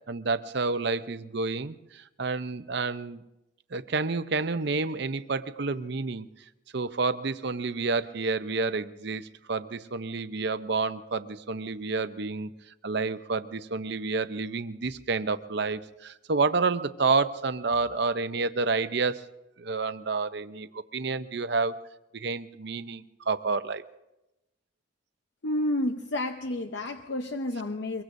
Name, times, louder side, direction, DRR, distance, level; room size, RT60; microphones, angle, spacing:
voice 1, 0.1-3.2 3.7-6.3 6.7-12.5 12.8-19.2 19.6-21.8 22.1-23.8, right 4 dB, 55° right, 12 dB, 0.6 m, -29 dB
voice 2, 25.4-28.0, left 1 dB, 60° left, 6 dB, 0.7 m, -30 dB
24.0 x 22.5 x 2.6 m, 0.95 s
head